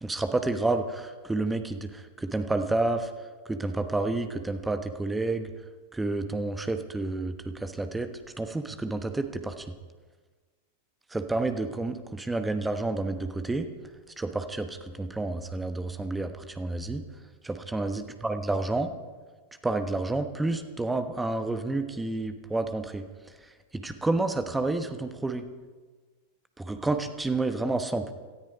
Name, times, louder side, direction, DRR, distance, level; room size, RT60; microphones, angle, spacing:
voice 1, 0.0-3.1 3.4-5.5 5.9-8.1 8.4-9.7 11.1-13.7 14.2-17.0 17.4-18.9 19.6-23.0 23.7-25.5 26.6-28.1, right 2 dB, 10° right, 9 dB, 1.1 m, -30 dB
18.0 x 13.0 x 5.1 m, 1.4 s
figure-of-eight pair, 90°, 0 cm